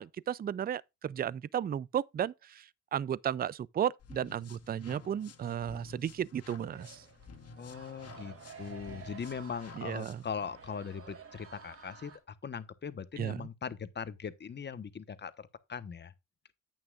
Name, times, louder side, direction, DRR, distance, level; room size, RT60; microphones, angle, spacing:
voice 1, 0.0-7.0 9.8-10.2 13.2-13.4, right 9 dB, 30° right, 0.4 m, -34 dB
sound 1, 4.0-10.4, left 4 dB, 55° left, 1.8 m, -52 dB
sound 2, 6.7-12.2, right 6 dB, 50° right, 2.9 m, -52 dB
voice 2, 7.6-16.1, left 6 dB, 35° left, 1.2 m, -40 dB
9.7 x 8.8 x 2.4 m
cardioid pair, 90°, 30 cm